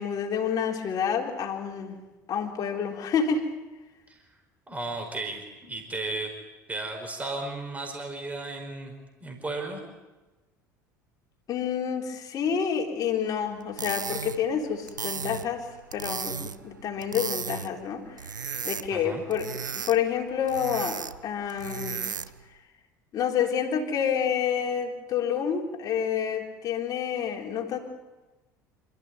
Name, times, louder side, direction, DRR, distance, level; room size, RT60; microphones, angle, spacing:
voice 1, 0.0-2.0 2.3-3.5 11.5-18.3 18.6-19.5 19.7-22.0 23.1-27.8, left 7 dB, 40° left, 1 dB, 3.8 m, -28 dB
voice 2, 4.7-6.3 6.7-8.9 9.2-9.8 18.9-19.2, right 2 dB, 15° right, 2 dB, 5.1 m, -34 dB
sound 1, 13.6-22.5, right 6 dB, 80° right, 0.7 m, -36 dB
27.0 x 14.5 x 9.6 m, 1.1 s
figure-of-eight pair, 65°, 10 cm